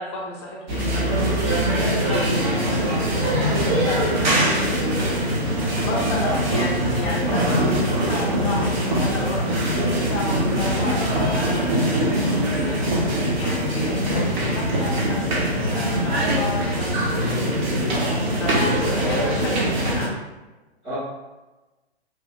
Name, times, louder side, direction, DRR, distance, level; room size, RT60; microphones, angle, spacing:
voice 1, 0.0-5.1 5.4-17.4 18.4-20.1, left 2 dB, 25° left, -4 dB, 0.5 m, -32 dB
sound 1, 0.7-20.1, right 1 dB, 45° right, 0.8 m, -22 dB
voice 2, 5.7-6.6 9.7-10.2 18.4-19.3 20.8-21.0, equal, 15° right, -12 dB, 0.7 m, -30 dB
3.0 x 2.5 x 2.4 m, 1.1 s
figure-of-eight pair, 115°, 34 cm